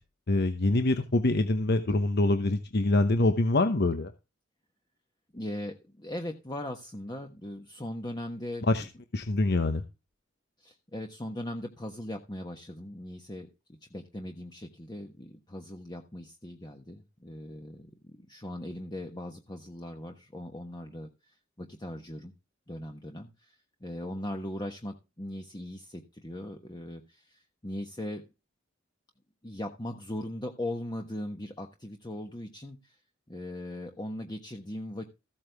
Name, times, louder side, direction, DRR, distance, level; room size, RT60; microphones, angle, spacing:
voice 1, 0.3-4.1 8.7-8.8 9.1-9.8, left 2 dB, 55° left, 8 dB, 1.0 m, -25 dB
voice 2, 5.3-8.9 10.6-22.3 22.7-28.2 29.4-33.0 33.3-35.1, left 1 dB, 20° left, 3 dB, 1.3 m, -39 dB
15.0 x 8.6 x 3.5 m, 0.28 s
head